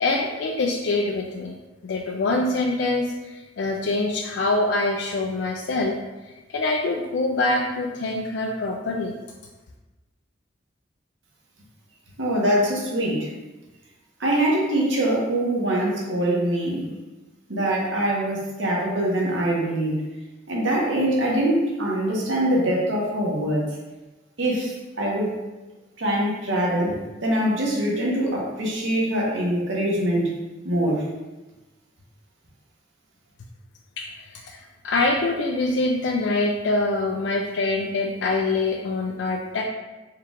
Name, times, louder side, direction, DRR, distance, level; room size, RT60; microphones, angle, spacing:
voice 1, 0.0-1.6 1.8-5.9 6.5-9.1 34.0-34.1 34.3-39.6, left 2 dB, 65° left, 1 dB, 0.4 m, -24 dB
voice 2, 12.2-13.3 14.2-16.9 17.5-20.0 20.5-23.7 24.4-25.4 26.0-27.0 27.2-30.3 30.6-31.1, right 1 dB, 90° right, -3 dB, 1.1 m, -23 dB
4.6 x 2.4 x 3.6 m, 1.1 s
head